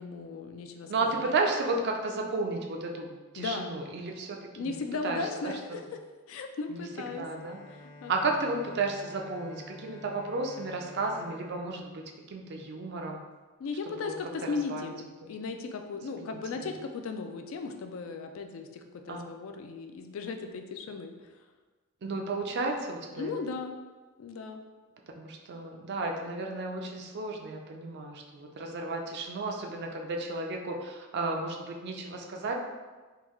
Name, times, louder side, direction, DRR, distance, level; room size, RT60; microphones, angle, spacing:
voice 1, 0.0-1.3 3.4-3.7 4.6-5.8 6.3-7.2 8.0-8.1 13.6-21.3 23.1-23.7 24.2-24.6, left 4 dB, 65° left, 5 dB, 0.3 m, -36 dB
voice 2, 0.9-4.8 5.0-5.6 6.7-6.8 7.1-7.6 8.1-13.2 13.9-14.1 14.4-14.9 16.1-16.7 19.1-19.2 22.0-23.4 25.2-32.5, right 3 dB, 50° right, 2 dB, 0.4 m, -33 dB
Bowed string instrument, 6.8-12.8, left 2 dB, 40° left, 0.7 m, -50 dB
3.6 x 2.2 x 3.0 m, 1.3 s
head